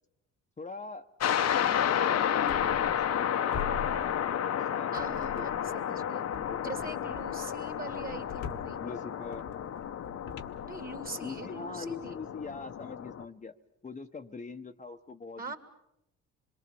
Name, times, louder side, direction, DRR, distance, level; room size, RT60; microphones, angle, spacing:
voice 1, 0.6-1.1 1.4-4.2 4.5-7.1 8.8-9.5 11.2-13.5 13.8-15.5, left 4 dB, 25° left, 5 dB, 1.0 m, -43 dB
sound 1, 1.2-13.2, left 9 dB, 60° left, 1.0 m, -31 dB
sound 2, 2.5-3.3 3.5-4.6 4.9-5.8 6.3-11.4, left 5 dB, 85° left, 1.5 m, -44 dB
voice 2, 4.9-6.3 6.6-8.8 10.6-12.2 15.4-15.6, right 3 dB, 30° right, 7 dB, 2.6 m, -42 dB
27.0 x 22.5 x 6.9 m, 0.81 s
cardioid pair, 90°, 30 cm